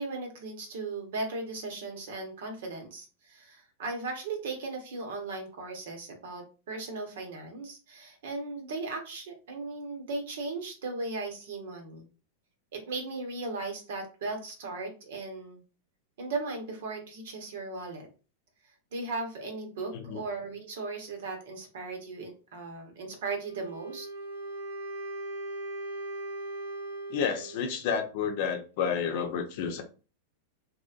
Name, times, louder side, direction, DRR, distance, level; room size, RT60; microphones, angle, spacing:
voice 1, 0.0-12.1 12.7-15.6 16.2-18.1 18.9-24.1, right 3 dB, 65° right, 1.0 m, -37 dB
Wind instrument woodwind instrument, 23.4-27.7, right 1 dB, 90° right, 0.9 m, -39 dB
voice 2, 27.1-29.8, left 7 dB, 55° left, 0.6 m, -30 dB
3.0 x 2.7 x 2.4 m
hypercardioid pair, 95°, 0 cm